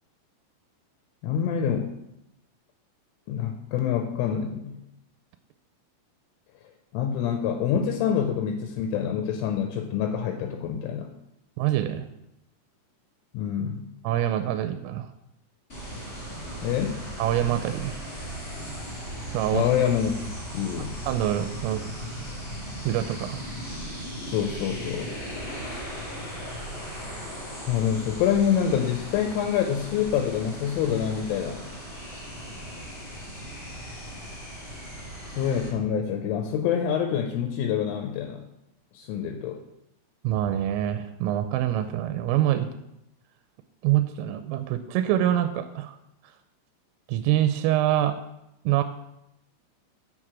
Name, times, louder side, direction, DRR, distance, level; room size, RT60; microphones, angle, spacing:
voice 1, 1.2-1.9 3.3-4.8 6.9-11.1 13.3-13.8 16.6-17.0 19.5-20.2 20.5-21.0 24.2-25.1 27.7-31.6 35.4-38.4 38.9-39.6, left 8 dB, 80° left, 4 dB, 3.1 m, -26 dB
voice 2, 11.6-12.1 14.0-15.1 17.2-18.0 19.3-19.7 21.1-22.2 22.8-23.4 40.2-42.7 43.8-46.0 47.1-48.2 48.7-48.8, right 12 dB, 85° right, 9 dB, 3.2 m, -25 dB
sound 1, 15.7-35.7, equal, 15° left, 2.8 m, -37 dB
7.5 x 6.4 x 5.9 m, 0.85 s
omnidirectional pair, 5.8 m